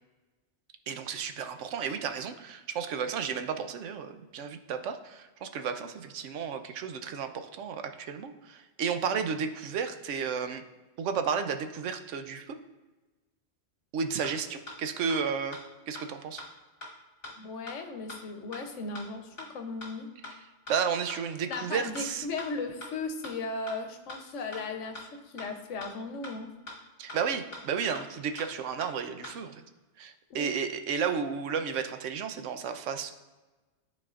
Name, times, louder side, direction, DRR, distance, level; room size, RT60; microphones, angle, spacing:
voice 1, 0.9-10.6 11.0-12.6 13.9-15.6 15.9-16.4 20.7-22.3 27.0-29.6 30.0-33.1, right 6 dB, 80° right, 8 dB, 1.0 m, -33 dB
sound 1, 14.2-14.3 14.7-14.8 15.1-15.2 15.5-15.6 16.0-16.1 16.4-16.5 16.8-16.9 17.2-17.3 17.7-17.8 18.1-18.2 18.5-18.6 19.0-19.1 19.4-19.5 19.8-19.9 20.2-20.3 20.7-20.8 21.1-21.2 21.5-21.6 22.0-22.1 22.4-22.5 22.8-22.9 23.2-23.3 23.7-23.8 24.1-24.2 24.5-24.6 25.0-25.1 25.4-25.5 25.8-25.9 26.2-26.3 26.7-26.8 27.1-27.2 27.5-27.6 28.0-28.1 28.4-28.5 28.8-28.9 29.2-29.3, left 2 dB, 50° left, 1.8 m, -41 dB
voice 2, 17.4-20.1 21.5-26.5 30.3-30.5, left 3 dB, 80° left, 6 dB, 1.1 m, -37 dB
11.5 x 4.2 x 2.4 m, 1.2 s
omnidirectional pair, 1.2 m